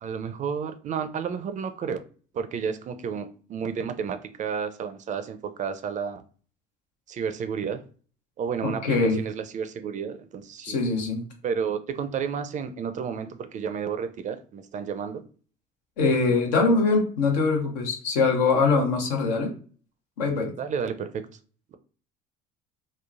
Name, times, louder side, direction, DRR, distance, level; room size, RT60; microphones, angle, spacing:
voice 1, 0.0-2.0 2.3-6.2 7.1-7.8 8.4-10.8 11.4-15.2 16.3-16.4 20.6-21.2 21.7-21.8, right 6 dB, 35° right, 0.4 m, -31 dB
voice 2, 8.6-9.2 10.6-11.2 16.0-19.5 20.2-20.5, left 4 dB, 90° left, 0.8 m, -23 dB
3.1 x 2.0 x 2.4 m
supercardioid pair, 75°, 21 cm